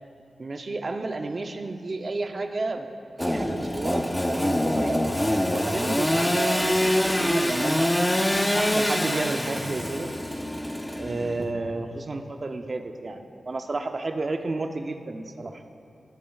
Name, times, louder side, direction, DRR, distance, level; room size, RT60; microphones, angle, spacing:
voice 1, 0.4-2.9 3.2-7.9 8.5-10.1 11.0-15.6, right 3 dB, 40° right, 6 dB, 0.5 m, -31 dB
Engine / Sawing, 3.2-11.4, left 1 dB, 10° left, 0.5 m, -25 dB
21.5 x 8.5 x 2.3 m, 2.4 s
wide cardioid pair, 155°, 0 cm